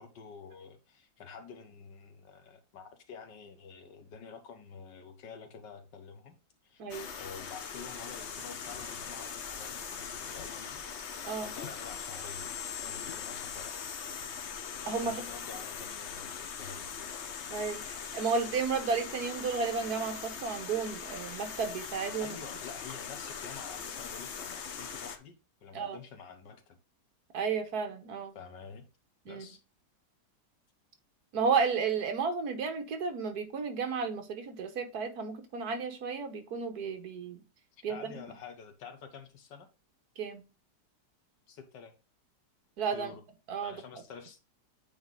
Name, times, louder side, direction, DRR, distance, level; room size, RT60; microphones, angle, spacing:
voice 1, 0.0-6.4 6.6-6.8 7.2-10.8 11.4-12.5 12.8-13.8 15.0-17.1 22.2-26.8 28.4-28.9 29.3-29.6 37.9-39.7 41.5-41.9 42.9-43.2 43.6-44.4, left 6 dB, 90° left, 1.8 m, -48 dB
voice 2, 6.8-7.1 11.2-11.5 14.9-15.2 17.5-22.4 25.7-26.0 27.3-28.3 29.3-29.5 31.3-37.4 37.8-38.2 40.2-40.4 42.8-43.1 43.5-43.8, right 5 dB, 65° right, 1.5 m, -33 dB
sound 1, 6.9-25.2, left 7 dB, 50° left, 0.9 m, -41 dB
8.5 x 3.4 x 3.7 m
omnidirectional pair, 1.9 m